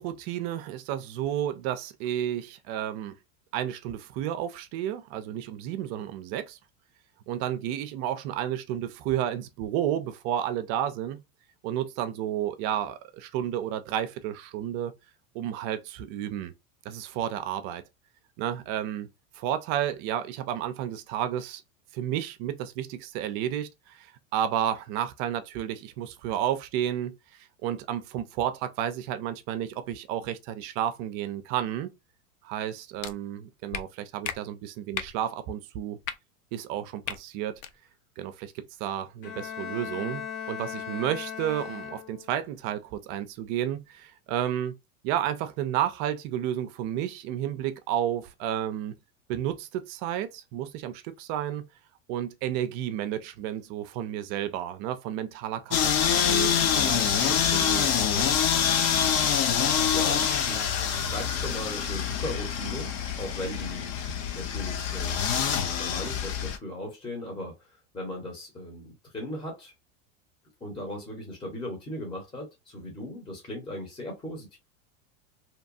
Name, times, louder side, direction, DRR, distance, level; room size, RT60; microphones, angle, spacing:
voice 1, 0.0-3.1 3.5-6.6 7.3-11.2 11.6-14.9 15.3-16.5 16.9-17.8 18.4-19.1 19.3-21.6 21.9-24.1 24.3-31.9 32.4-36.0 36.5-37.5 38.2-44.7 45.0-48.9 49.3-51.6 52.1-58.3, right 11 dB, 45° right, 0.4 m, -31 dB
sound 1, 33.0-33.1 33.7-33.8 34.2-34.4 34.9-35.1 36.0-36.1 37.0-37.2 37.5-37.7, left 9 dB, 90° left, 0.5 m, -34 dB
Bowed string instrument, 39.2-42.4, left 8 dB, 60° left, 0.8 m, -37 dB
sound 2, 55.7-66.6, left 8 dB, 40° left, 0.5 m, -26 dB
voice 2, 59.0-62.9 63.2-69.7 70.6-74.6, left 1 dB, 10° left, 0.9 m, -38 dB
2.8 x 2.2 x 2.6 m
supercardioid pair, 120°, 40 cm